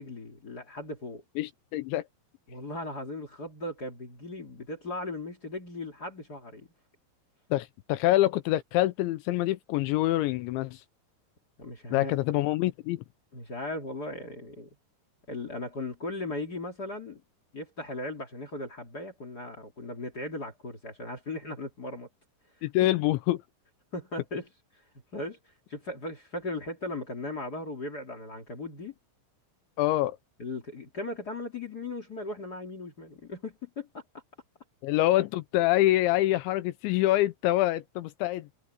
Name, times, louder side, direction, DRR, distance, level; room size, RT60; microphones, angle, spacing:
voice 1, 0.0-1.2 2.5-6.7 11.6-12.1 13.3-14.7 15.3-17.2 17.5-22.1 22.8-22.9 23.9-24.5 25.1-28.9 30.4-34.0, left 2 dB, 35° left, 1.6 m, -37 dB
voice 2, 1.4-2.0 7.5-10.8 11.9-13.0 22.6-23.4 29.8-30.2 34.8-38.5, left 16 dB, 80° left, 2.8 m, -26 dB
omnidirectional pair, 5.9 m